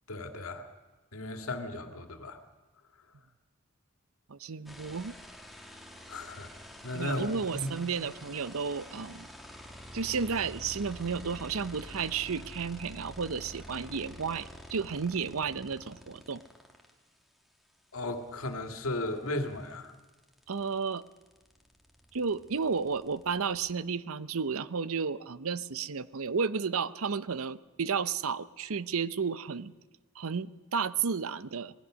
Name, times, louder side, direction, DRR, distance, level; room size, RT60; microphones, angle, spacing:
voice 1, 0.1-0.7 1.1-2.4 6.1-6.5 6.8-7.7 17.9-19.9, left 1 dB, 75° left, 6 dB, 2.2 m, -35 dB
voice 2, 4.3-5.1 6.9-9.3 9.9-16.4 20.5-21.0 22.1-29.7 30.2-31.7, right 5 dB, 75° right, 16 dB, 0.7 m, -32 dB
sound 1, 4.7-16.9 19.0-19.1 19.4-23.7, equal, ahead, 2.0 m, -48 dB
27.0 x 19.5 x 6.3 m, 1.3 s
head